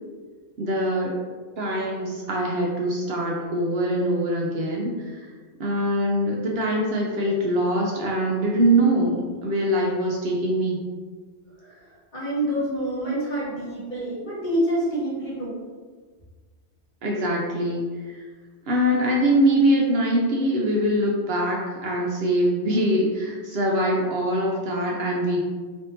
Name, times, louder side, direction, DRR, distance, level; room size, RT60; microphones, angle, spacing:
voice 1, 0.6-1.1 1.6-5.3 5.6-10.8 17.0-18.2 18.7-25.4, right 1 dB, 65° right, -2 dB, 0.7 m, -23 dB
voice 2, 12.1-15.5, right 1 dB, 40° left, -7 dB, 1.2 m, -27 dB
3.4 x 2.7 x 2.6 m, 1.5 s
omnidirectional pair, 1.2 m